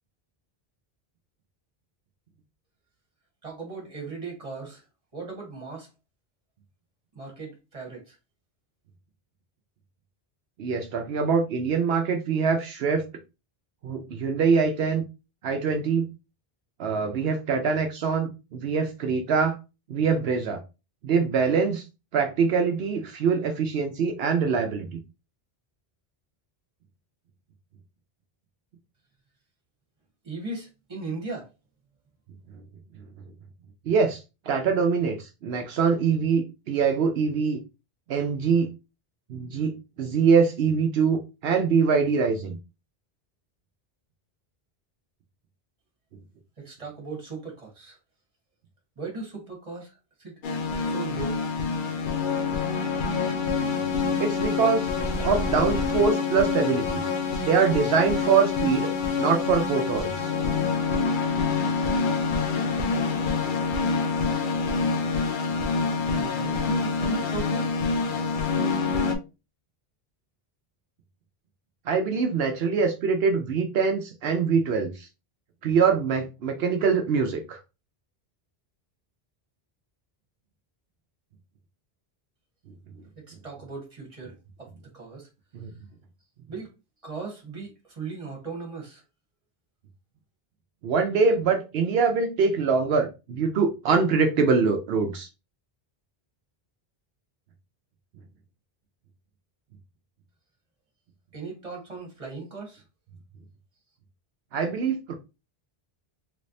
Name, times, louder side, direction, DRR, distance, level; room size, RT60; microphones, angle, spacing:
voice 1, 3.4-4.8 5.1-5.9 7.1-8.2 30.2-31.5 46.6-48.0 49.0-50.4 50.8-51.4 66.1-67.7 83.2-85.3 86.5-86.7 87.0-89.0 101.3-102.8, right 3 dB, 35° right, -1 dB, 1.4 m, -38 dB
voice 2, 10.6-13.0 13.8-15.0 15.4-16.1 16.8-19.6 19.9-20.6 21.0-21.8 22.1-25.0 33.9-37.6 38.1-38.7 39.3-42.6 54.2-54.9 55.2-57.1 57.4-58.9 59.2-60.3 71.9-75.1 75.6-77.6 85.5-85.7 90.8-95.3 104.5-105.1, right 5 dB, 75° right, 4 dB, 0.8 m, -24 dB
sound 1, 50.4-69.1, left 4 dB, 60° left, 0.7 m, -26 dB
3.4 x 3.2 x 2.6 m, 0.28 s
omnidirectional pair, 1.0 m